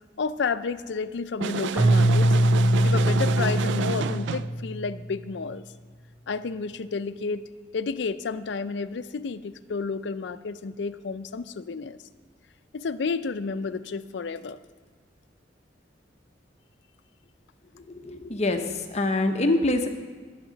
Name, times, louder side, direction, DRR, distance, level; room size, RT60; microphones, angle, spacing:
voice 1, 0.2-2.4 2.8-5.6 6.3-7.5 7.7-12.0 12.7-14.6, left 4 dB, 75° left, 13 dB, 0.5 m, -31 dB
sound 1, 1.4-4.6, right 6 dB, 80° right, 0.3 m, -30 dB
Keyboard (musical), 1.8-4.9, right 1 dB, 10° right, 0.6 m, -22 dB
voice 2, 17.7-19.9, left 2 dB, 40° left, 6 dB, 0.8 m, -25 dB
19.0 x 7.3 x 4.0 m, 1.5 s
head